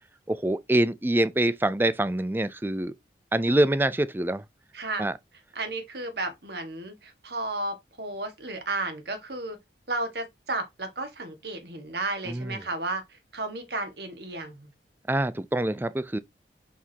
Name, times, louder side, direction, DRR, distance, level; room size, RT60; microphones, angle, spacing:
voice 1, 0.3-2.9 3.3-4.4 5.0-5.1 12.3-12.6 15.1-16.2, right 1 dB, 10° right, 0.4 m, -25 dB
voice 2, 4.7-5.1 5.5-9.6 9.9-13.0 13.3-14.7, right 2 dB, 65° right, 1.7 m, -33 dB
6.3 x 5.9 x 2.8 m
head